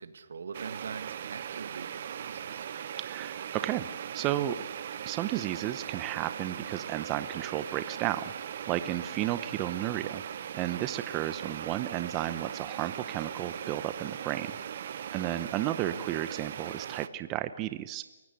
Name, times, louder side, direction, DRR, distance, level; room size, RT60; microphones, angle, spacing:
voice 1, 0.0-2.7 15.9-16.1, right 5 dB, 80° right, 11 dB, 2.1 m, -43 dB
sound 1, 0.5-17.1, right 9 dB, 50° right, 1.0 m, -39 dB
voice 2, 3.0-3.9 4.1-4.5 5.0-8.3 8.7-10.2 10.5-14.5 15.1-18.0, right 14 dB, 20° right, 12 dB, 0.8 m, -33 dB
29.0 x 17.0 x 8.4 m, 1.2 s
hypercardioid pair, 160°, 0 cm